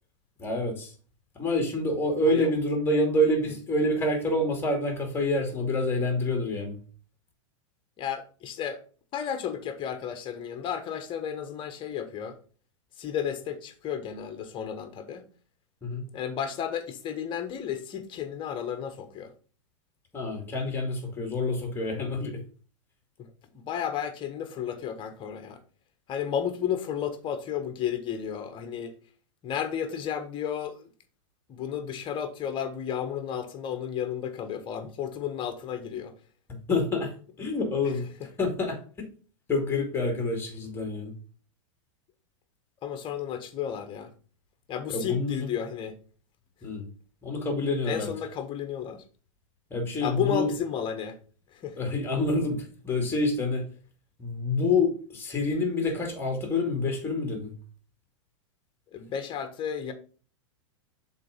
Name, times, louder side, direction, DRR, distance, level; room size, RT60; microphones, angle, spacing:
voice 1, 0.4-0.9 1.4-6.8 15.8-16.0 20.1-22.4 36.5-37.1 37.4-38.0 38.4-38.8 39.5-41.1 44.9-45.5 46.6-46.8 47.2-48.1 49.7-50.5 51.8-53.6 54.2-57.5, left 2 dB, 15° left, 2.6 m, -27 dB
voice 2, 8.0-8.8 9.1-12.4 13.0-15.3 16.1-19.3 23.2-25.6 26.1-29.0 29.4-30.8 31.5-36.1 37.8-37.9 42.8-44.1 44.7-45.9 47.8-49.0 50.0-51.2 51.5-51.8 58.9-59.9, left 8 dB, 30° left, 1.3 m, -33 dB
6.6 x 4.0 x 5.1 m
hypercardioid pair, 115°, 16 cm